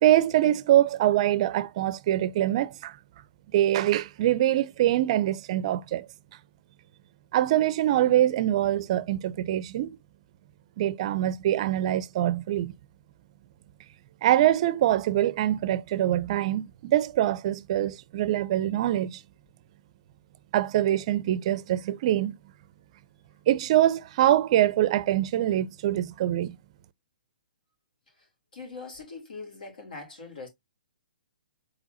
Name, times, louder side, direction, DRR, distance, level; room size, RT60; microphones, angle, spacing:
voice 1, 0.0-3.0 3.5-6.1 7.3-10.0 10.8-12.7 14.2-19.2 20.5-22.4 23.5-26.6, right 13 dB, 45° right, 0.4 m, -24 dB
voice 2, 28.5-30.5, left 4 dB, 75° left, 3.3 m, -41 dB
4.7 x 4.3 x 2.6 m
hypercardioid pair, 140°, 5 cm